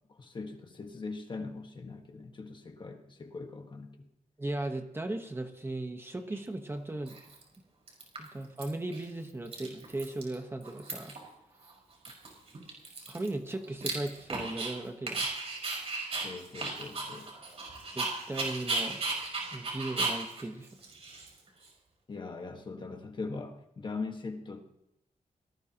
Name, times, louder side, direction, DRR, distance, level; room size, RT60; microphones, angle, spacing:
voice 1, 0.1-4.1 16.2-17.3 22.1-24.6, left 4 dB, 35° left, 4 dB, 1.5 m, -41 dB
voice 2, 4.4-7.2 8.2-11.1 13.1-15.3 17.9-19.0 19.5-20.7, right 2 dB, 15° right, 5 dB, 1.1 m, -37 dB
Dog, 6.3-6.4 7.1-7.5 7.9-8.6 8.9-9.0 9.3-10.3 10.6-11.3 11.6-11.7 12.0-14.7 15.1-21.7, right 3 dB, 45° right, 5.1 m, -36 dB
23.5 x 18.5 x 2.9 m, 0.83 s
wide cardioid pair, 170°, 14 cm